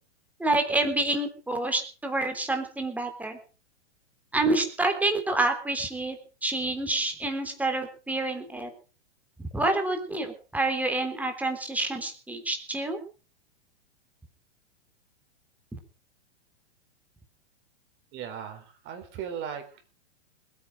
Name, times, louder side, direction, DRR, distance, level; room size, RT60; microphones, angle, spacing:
voice 1, 0.4-3.4 4.3-8.7 9.4-13.0 15.7-15.8, right 2 dB, 5° right, 5 dB, 3.4 m, -28 dB
voice 2, 18.1-19.9, right 8 dB, 35° right, 6 dB, 4.2 m, -38 dB
20.5 x 9.5 x 6.4 m, 0.37 s
hypercardioid pair, 125°, 34 cm